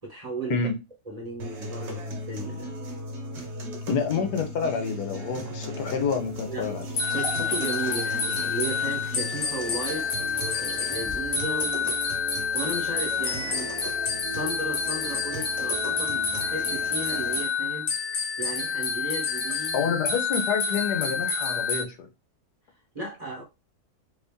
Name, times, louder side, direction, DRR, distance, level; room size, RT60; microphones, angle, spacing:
voice 1, 0.0-0.7 1.1-2.7 6.5-6.7 7.1-12.0 12.5-13.8 14.3-19.9 22.9-23.4, right 2 dB, 30° right, 0.9 m, -35 dB
sound 1, 1.4-17.4, equal, 50° right, 1.1 m, -37 dB
voice 2, 3.9-6.9 19.7-22.0, left 6 dB, 90° left, 1.3 m, -28 dB
sound 2, 6.2-11.7, equal, 20° left, 1.0 m, -44 dB
sound 3, 7.0-21.8, left 5 dB, 65° left, 1.1 m, -28 dB
3.0 x 2.6 x 3.5 m
omnidirectional pair, 1.7 m